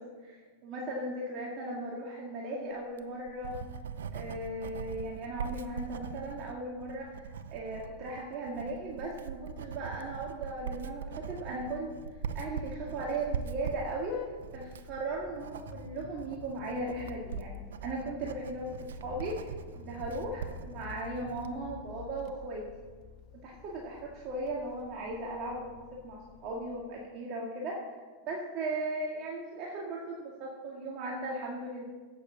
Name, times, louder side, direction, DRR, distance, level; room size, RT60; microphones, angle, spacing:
voice 1, 0.0-3.6 4.1-11.9 12.3-14.2 14.5-22.7 23.4-27.8 28.3-31.8, right 2 dB, 45° right, -3 dB, 2.0 m, -37 dB
Writing, 2.8-21.6, right 6 dB, 85° right, 0.6 m, -42 dB
Vehicle horn car horn honking, 11.9-27.1, left 7 dB, 45° left, 0.8 m, -49 dB
8.4 x 8.4 x 7.1 m, 1.4 s
hypercardioid pair, 120°, 0 cm